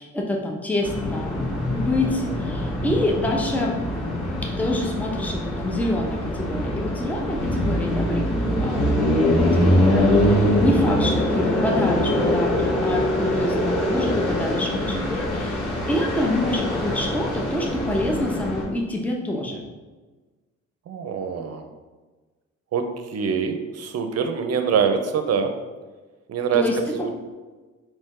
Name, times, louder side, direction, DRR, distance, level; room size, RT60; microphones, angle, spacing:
voice 1, 0.0-3.8 4.4-8.8 9.3-15.6 15.9-19.6 26.5-27.1, left 1 dB, 5° left, 0 dB, 0.6 m, -27 dB
sound 1, 0.8-18.6, left 1 dB, 80° left, 1.3 m, -23 dB
voice 2, 20.9-21.6 22.7-25.5 26.3-26.6 26.9-27.1, right 6 dB, 55° right, 7 dB, 0.6 m, -24 dB
4.2 x 2.9 x 3.7 m, 1.3 s
cardioid pair, 90°, 30 cm